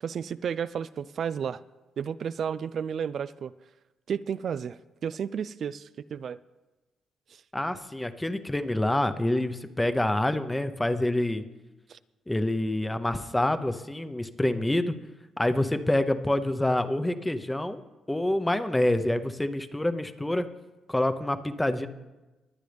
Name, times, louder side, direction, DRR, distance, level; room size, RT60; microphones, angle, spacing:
voice 1, 0.0-1.6 2.0-3.5 4.1-6.4 7.3-7.4 11.9-12.0, right 7 dB, 55° right, 15 dB, 0.3 m, -32 dB
voice 2, 7.5-11.4 12.3-14.9 15.4-17.8 18.1-20.4 20.9-21.9, left 1 dB, 10° left, 10 dB, 0.8 m, -27 dB
21.0 x 9.1 x 3.4 m, 1.1 s
cardioid pair, 90°, 0 cm